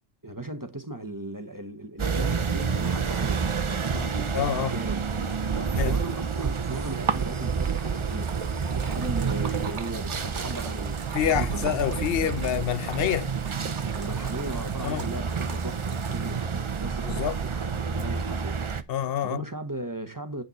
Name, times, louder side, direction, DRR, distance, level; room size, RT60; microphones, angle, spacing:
voice 1, 0.2-5.0 5.5-11.8 13.9-18.6 19.2-20.4, right 2 dB, 20° right, 1.0 m, -37 dB
sound 1, 2.0-18.8, right 5 dB, 35° right, 0.6 m, -29 dB
voice 2, 4.3-4.7 5.7-5.9 11.1-13.3 14.8-15.1 17.0-17.4 18.9-19.4, left 10 dB, 60° left, 0.8 m, -27 dB
Splash splatter, 7.6-16.7, right 6 dB, 75° right, 1.4 m, -43 dB
8.2 x 6.6 x 4.1 m
omnidirectional pair, 1.2 m